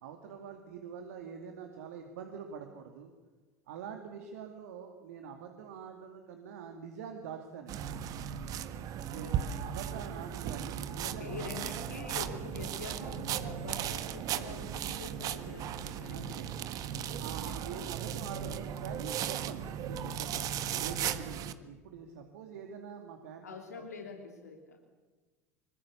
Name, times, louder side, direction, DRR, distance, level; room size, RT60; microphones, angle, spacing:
voice 1, 0.0-3.1 3.7-7.8 9.1-11.4 16.1-16.5 17.0-20.5 20.8-23.5 23.7-23.9, right 7 dB, 65° right, 4 dB, 2.6 m, -45 dB
sound 1, 7.7-21.5, right 9 dB, 45° right, 1.5 m, -36 dB
voice 2, 9.1-9.5 11.0-16.4 17.4-17.6 20.9-21.4 23.4-24.8, left 5 dB, 75° left, 2 dB, 3.1 m, -45 dB
25.5 x 23.0 x 7.1 m, 1.3 s
figure-of-eight pair, 75°, 9 cm